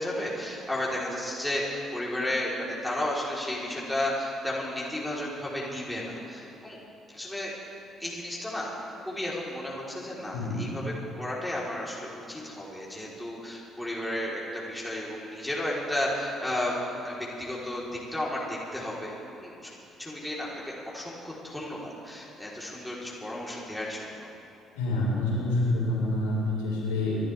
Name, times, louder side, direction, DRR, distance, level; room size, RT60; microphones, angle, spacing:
voice 1, 0.0-6.8 7.1-7.5 8.0-8.7 9.0-19.1 19.4-19.7 20.0-24.3, left 1 dB, 5° left, -5 dB, 3.6 m, -33 dB
voice 2, 10.3-10.7 24.7-27.1, left 2 dB, 70° left, -6 dB, 4.6 m, -27 dB
29.5 x 12.0 x 3.4 m, 2.9 s
figure-of-eight pair, 45°, 0 cm